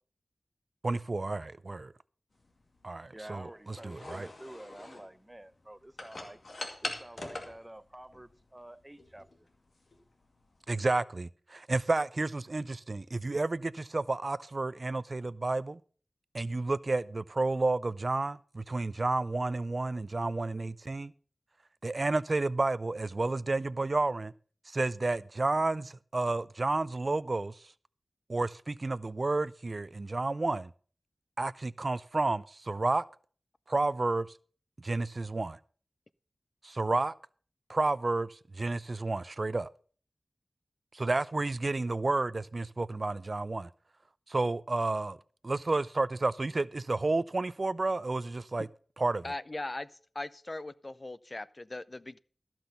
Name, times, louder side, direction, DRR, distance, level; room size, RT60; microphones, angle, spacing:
voice 1, 0.8-1.9 2.8-4.3 10.7-15.8 16.3-21.1 21.8-24.3 24.7-27.6 28.3-30.7 31.4-33.0 33.7-34.3 34.8-35.6 36.6-37.1 37.7-39.7 40.9-43.7 44.3-45.2 45.4-48.7 49.0-49.2, right 2 dB, 55° right, 0.4 m, -31 dB
sound 1, 2.4-11.0, left 2 dB, 65° left, 2.2 m, -45 dB
voice 2, 3.1-6.4 6.8-9.5, right 1 dB, 20° right, 0.7 m, -49 dB
voice 3, 49.2-49.9 50.1-52.2, left 2 dB, 40° left, 0.6 m, -39 dB
13.5 x 6.0 x 6.8 m
cardioid pair, 40°, 0 cm